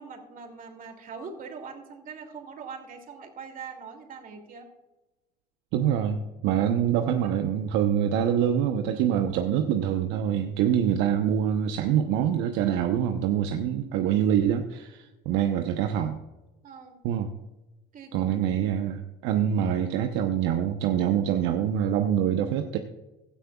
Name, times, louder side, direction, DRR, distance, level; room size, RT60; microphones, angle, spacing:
voice 1, 0.0-4.7 6.6-6.7 16.6-17.0 17.9-18.3, right 5 dB, 40° right, 4 dB, 2.8 m, -42 dB
voice 2, 5.7-16.2 17.0-17.3 18.1-22.8, right 9 dB, 65° right, 6 dB, 0.9 m, -25 dB
16.5 x 13.0 x 2.4 m, 1.1 s
hypercardioid pair, 80°, 21 cm